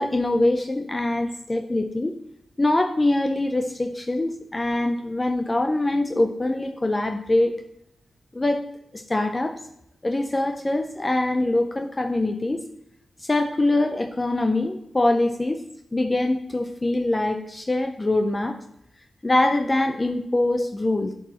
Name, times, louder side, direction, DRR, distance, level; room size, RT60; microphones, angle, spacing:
voice 1, 0.0-2.2 2.6-7.5 8.3-8.6 8.9-9.6 10.0-12.6 13.2-15.6 15.9-18.6 19.2-21.1, left 2 dB, 30° left, 5 dB, 0.5 m, -23 dB
10.5 x 4.7 x 3.0 m, 0.77 s
cardioid pair, 60°, 0 cm